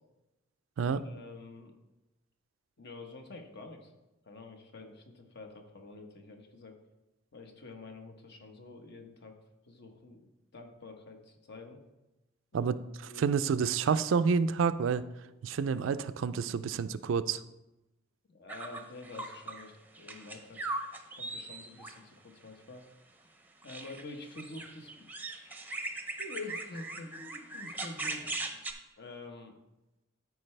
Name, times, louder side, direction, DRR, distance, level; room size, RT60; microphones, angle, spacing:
voice 1, 0.8-1.7 2.8-3.9 4.2-6.8 7.3-9.4 9.7-11.8 12.5-12.7 13.1-13.3 18.3-20.6 21.1-22.8 23.6-25.7 26.2-27.1 27.5-28.3 29.0-29.5, left 2 dB, 60° left, 4 dB, 1.1 m, -47 dB
voice 2, 13.2-15.0 15.4-17.4, right 6 dB, 75° right, 13 dB, 0.4 m, -28 dB
sound 1, 18.5-19.7 19.9-22.0 23.6-28.7, right 2 dB, 10° right, 0.6 m, -39 dB
13.0 x 4.7 x 3.3 m, 0.98 s
head